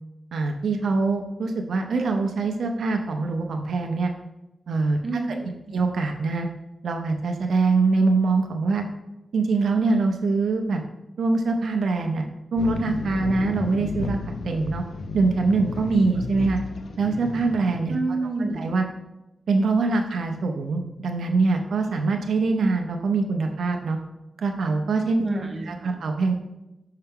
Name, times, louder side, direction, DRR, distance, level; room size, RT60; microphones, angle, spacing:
voice 1, 0.3-4.1 4.7-5.0 5.7-6.5 6.8-8.8 9.3-10.8 11.2-14.8 15.1-16.6 17.0-17.9 18.6-18.8 19.5-24.0 24.4-25.3 25.7-26.4, right 3 dB, 85° right, 3 dB, 0.6 m, -23 dB
voice 2, 5.0-5.5 17.9-18.7 25.2-26.0, right 3 dB, 35° right, 1 dB, 0.9 m, -28 dB
sound 1, 12.6-17.8, left 3 dB, 65° left, 0.5 m, -33 dB
5.6 x 5.6 x 3.6 m, 0.95 s
wide cardioid pair, 140°, 0 cm